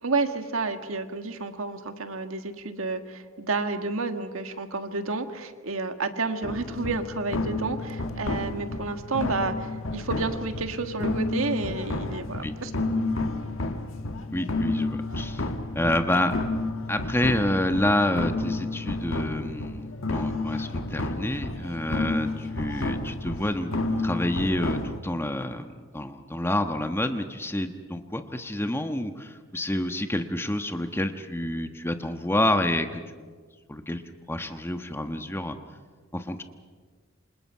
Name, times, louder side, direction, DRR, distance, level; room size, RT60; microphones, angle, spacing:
voice 1, 0.0-12.7, right 3 dB, 90° right, 7 dB, 1.7 m, -30 dB
sound 1, 6.4-25.0, left 2 dB, 80° left, 1.5 m, -31 dB
voice 2, 14.3-15.4 15.7-16.3 16.9-33.3 33.7-34.0 34.3-35.6 36.1-36.4, left 1 dB, 10° left, 7 dB, 1.2 m, -28 dB
28.0 x 26.0 x 5.7 m, 1.5 s
head